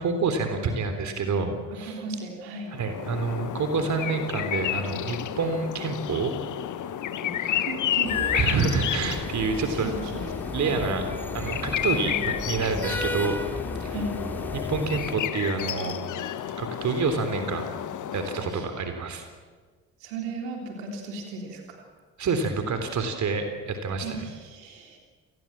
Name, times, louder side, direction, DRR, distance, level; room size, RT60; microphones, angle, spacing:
voice 1, 0.0-2.0 2.7-6.3 8.3-9.9 10.5-11.1 11.3-13.4 13.8-14.0 14.5-15.9 16.6-17.7 18.1-19.3 22.2-24.3, right 4 dB, 45° right, 7 dB, 3.6 m, -28 dB
voice 2, 1.8-2.7 7.2-7.3 7.6-8.4 9.7-10.9 12.0-12.3 13.9-14.2 18.3-18.7 20.0-21.9 24.0-25.0, right 3 dB, 70° right, 2 dB, 3.7 m, -36 dB
sound 1, 2.7-18.7, left 11 dB, 50° left, 1.4 m, -31 dB
sound 2, 8.1-15.1, left 1 dB, 5° left, 4.0 m, -35 dB
28.5 x 20.0 x 7.5 m, 1.4 s
figure-of-eight pair, 45°, 39 cm